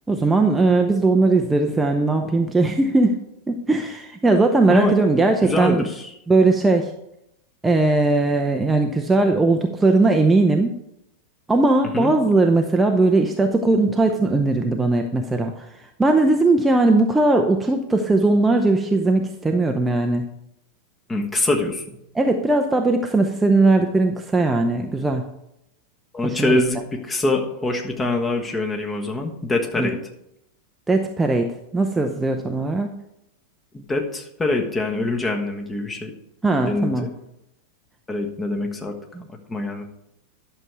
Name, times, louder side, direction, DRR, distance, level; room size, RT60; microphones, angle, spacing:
voice 1, 0.1-3.1 3.5-5.8 6.3-6.9 7.6-10.7 11.5-20.2 22.1-25.2 26.2-26.6 29.8-29.9 30.9-32.9 36.4-37.1 39.1-39.2, right 2 dB, 10° right, 3 dB, 0.7 m, -19 dB
voice 2, 5.4-6.1 11.9-12.1 21.1-21.8 26.1-30.0 33.7-36.1 36.7-37.1 38.1-38.9 39.5-39.8, left 2 dB, 15° left, 3 dB, 1.4 m, -24 dB
11.0 x 6.7 x 4.6 m, 0.80 s
figure-of-eight pair, 90°, 0 cm